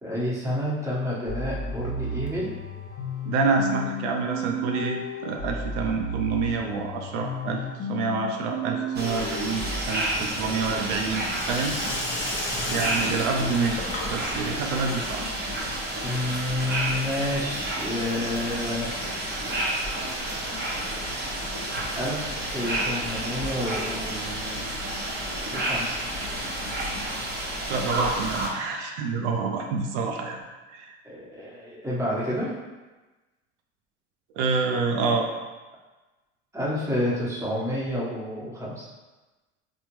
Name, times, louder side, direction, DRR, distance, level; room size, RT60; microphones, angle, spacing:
voice 1, 0.0-2.6 16.0-18.9 21.9-24.7 25.5-26.0 31.0-32.5 36.5-38.9, left 1 dB, 10° right, -7 dB, 1.1 m, -29 dB
sound 1, 1.3-9.9, equal, 65° left, 0.8 m, -33 dB
voice 2, 3.2-11.8 12.7-15.4 27.7-31.0 34.3-35.3, right 4 dB, 80° right, 2 dB, 0.5 m, -28 dB
sound 2, 8.9-28.5, right 1 dB, 30° right, 0.9 m, -30 dB
Sink (filling or washing), 10.0-16.8, left 1 dB, 35° left, 0.9 m, -35 dB
3.5 x 2.1 x 3.0 m, 1.2 s
hypercardioid pair, 75°, 34 cm